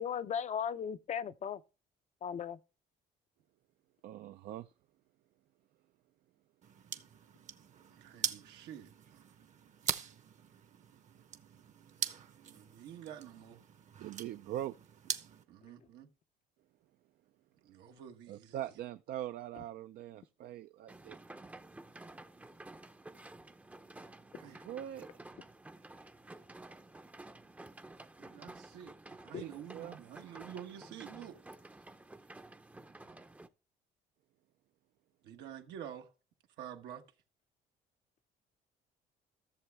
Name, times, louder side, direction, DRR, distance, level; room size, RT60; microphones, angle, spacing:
voice 1, 0.0-1.6 2.2-2.6 29.3-29.4, left 8 dB, 45° left, 0.5 m, -36 dB
voice 2, 4.0-4.7 14.0-14.7 18.3-21.2 24.6-25.1 29.4-30.0, right 12 dB, 65° right, 0.4 m, -42 dB
sound 1, 6.6-15.4, right 8 dB, 45° right, 0.9 m, -42 dB
voice 3, 7.9-9.3 12.4-13.6 15.5-16.1 17.6-18.6 24.3-24.7 28.2-31.8 33.0-33.2 35.2-36.1 36.6-37.1, right 10 dB, 90° right, 1.3 m, -49 dB
sound 2, 20.9-33.5, right 2 dB, 10° right, 0.6 m, -52 dB
14.0 x 6.9 x 3.4 m
cardioid pair, 110°, 17 cm